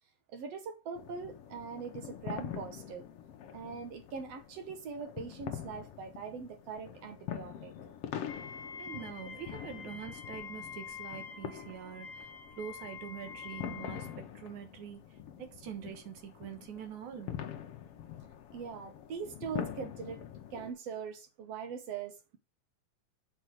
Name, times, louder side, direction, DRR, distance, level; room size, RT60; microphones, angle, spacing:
voice 1, 0.3-3.1 3.5-7.7 18.5-20.2 20.5-22.4, right 6 dB, 65° right, 2.0 m, -42 dB
sound 1, 0.9-20.7, left 9 dB, 65° left, 1.7 m, -45 dB
Wind instrument woodwind instrument, 8.3-14.2, left 6 dB, 50° left, 1.7 m, -46 dB
voice 2, 8.8-12.3 12.6-15.0 15.4-17.3, right 9 dB, 90° right, 2.9 m, -45 dB
6.7 x 4.8 x 6.0 m
omnidirectional pair, 3.3 m